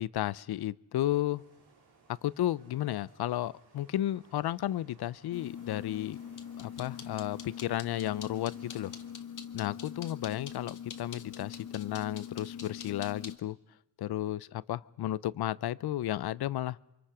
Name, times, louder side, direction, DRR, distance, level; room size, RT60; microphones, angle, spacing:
voice 1, 0.0-1.4 2.2-6.2 6.6-8.9 9.5-13.6 14.0-16.8, left 13 dB, 60° left, 0.7 m, -33 dB
sound 1, 1.3-9.1, right 4 dB, 60° right, 4.5 m, -62 dB
sound 2, 5.3-13.4, left 8 dB, 45° left, 1.8 m, -43 dB
28.5 x 23.5 x 4.9 m
supercardioid pair, 70°, 44 cm